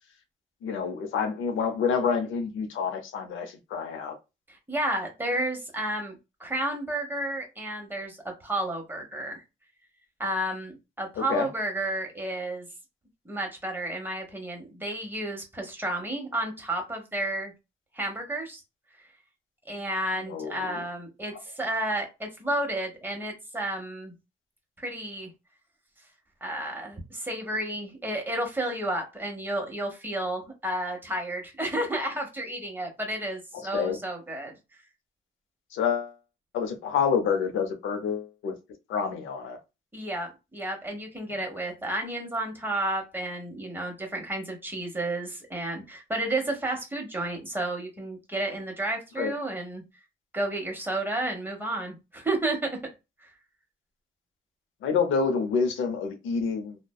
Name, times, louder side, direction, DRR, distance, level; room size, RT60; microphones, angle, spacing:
voice 1, 0.6-4.2 11.2-11.5 20.2-20.9 33.7-34.0 35.7-36.1 36.5-38.5 38.9-39.6 41.3-41.4 49.2-49.3 54.8-56.8, left 6 dB, 80° left, 0.6 m, -28 dB
voice 2, 4.7-9.4 10.2-12.7 13.2-17.5 17.9-18.6 19.7-24.1 24.8-25.3 26.4-34.5 39.9-49.8 50.3-52.7, right 1 dB, 10° right, 1.0 m, -31 dB
2.5 x 2.1 x 2.3 m
cardioid pair, 90°, 20 cm